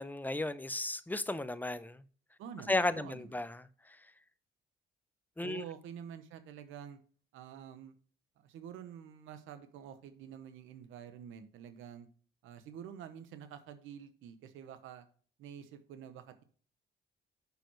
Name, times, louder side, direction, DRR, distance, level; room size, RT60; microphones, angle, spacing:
voice 1, 0.0-2.0 2.7-4.0 5.4-5.6, left 2 dB, 10° left, 0.7 m, -34 dB
voice 2, 2.4-3.3 5.4-7.0 7.3-7.9 8.4-12.1 12.4-15.1 15.4-16.4, right 8 dB, 90° right, 1.0 m, -48 dB
6.8 x 6.2 x 4.6 m
cardioid pair, 90°, 20 cm